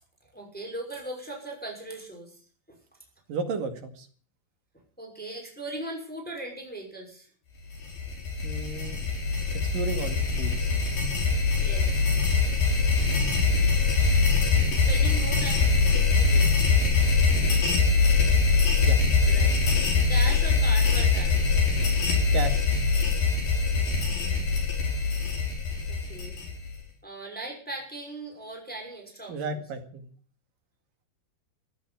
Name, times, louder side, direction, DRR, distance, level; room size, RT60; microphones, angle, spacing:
voice 1, 0.3-2.4 2.7-2.8 5.0-7.3 11.6-12.0 14.9-16.9 19.2-19.5 20.1-21.6 25.9-26.3 27.0-29.6, right 1 dB, ahead, 0 dB, 5.4 m, -39 dB
voice 2, 3.3-4.1 8.4-9.0 9.6-10.7 18.8-19.0 22.3-22.7 29.3-30.1, right 4 dB, 60° right, 7 dB, 3.7 m, -33 dB
sound 1, 7.7-26.8, left 4 dB, 60° left, 7.0 m, -23 dB
15.0 x 10.5 x 8.6 m, 0.43 s
omnidirectional pair, 4.5 m